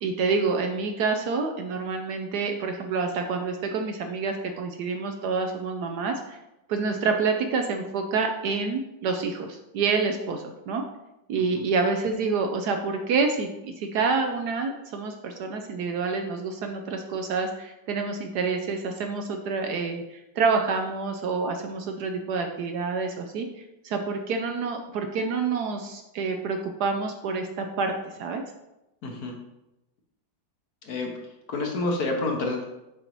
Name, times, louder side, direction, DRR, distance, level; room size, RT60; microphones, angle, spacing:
voice 1, 0.0-6.4 6.7-10.8 11.3-23.5 23.8-27.9 28.2-28.4, right 4 dB, 70° right, 4 dB, 1.1 m, -27 dB
voice 2, 29.0-29.4 30.8-31.2 31.5-32.7, left 2 dB, 60° left, 2 dB, 1.2 m, -28 dB
6.9 x 5.1 x 3.0 m, 0.92 s
omnidirectional pair, 2.0 m